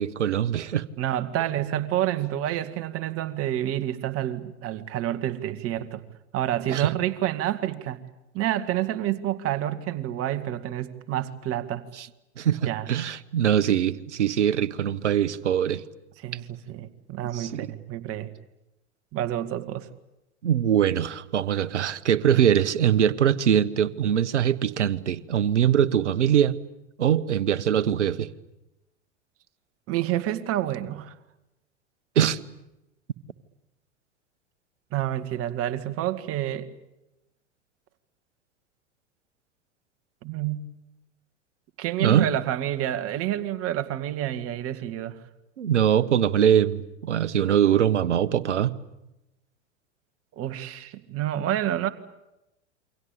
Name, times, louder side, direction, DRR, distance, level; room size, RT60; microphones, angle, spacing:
voice 1, 0.0-0.8 6.7-6.9 12.0-12.1 12.4-15.8 17.3-17.7 20.4-26.6 27.0-28.3 32.1-32.4 42.0-42.3 45.6-48.7, right 9 dB, 75° right, 1.3 m, -22 dB
voice 2, 1.0-6.0 6.3-8.0 8.3-11.9 12.7-12.9 16.2-18.3 19.1-19.9 29.9-31.2 34.9-36.7 40.2-40.6 41.8-45.2 50.3-51.9, right 12 dB, 40° right, 2.1 m, -28 dB
28.5 x 24.5 x 8.6 m
figure-of-eight pair, 90°, 35 cm